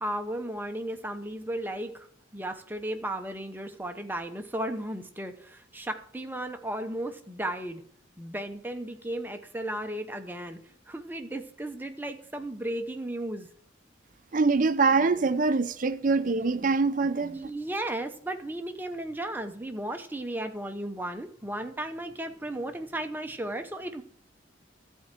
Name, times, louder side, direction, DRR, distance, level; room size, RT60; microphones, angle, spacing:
voice 1, 0.0-2.1 2.3-7.8 8.2-10.6 10.9-13.5 17.3-24.0, right 1 dB, 10° right, 0.8 m, -35 dB
voice 2, 14.3-17.4, right 4 dB, 45° right, 0.5 m, -24 dB
13.5 x 4.5 x 7.5 m
head